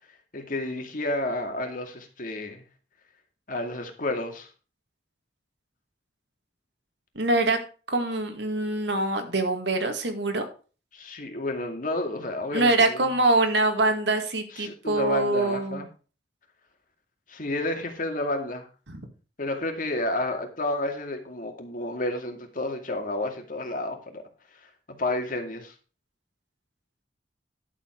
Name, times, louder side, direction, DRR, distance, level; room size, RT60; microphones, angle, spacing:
voice 1, 0.3-2.6 3.5-4.5 10.9-13.0 14.5-15.9 17.3-18.7 19.4-24.2 25.0-25.7, left 2 dB, 50° left, 4 dB, 2.3 m, -30 dB
voice 2, 7.2-7.6 7.9-10.4 12.5-15.8 18.9-19.0, right 2 dB, 75° right, 6 dB, 2.1 m, -24 dB
11.5 x 7.3 x 4.7 m, 0.36 s
head